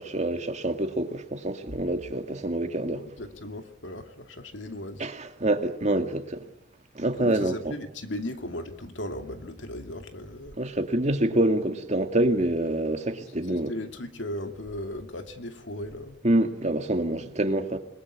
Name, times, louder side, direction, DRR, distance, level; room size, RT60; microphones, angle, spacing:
voice 1, 0.0-3.1 5.0-6.4 6.9-7.7 10.6-13.7 16.2-17.8, right 1 dB, 40° right, 2.2 m, -26 dB
voice 2, 2.9-5.0 7.2-10.6 13.5-16.2, left 1 dB, 80° left, 2.6 m, -37 dB
27.5 x 21.0 x 8.6 m
head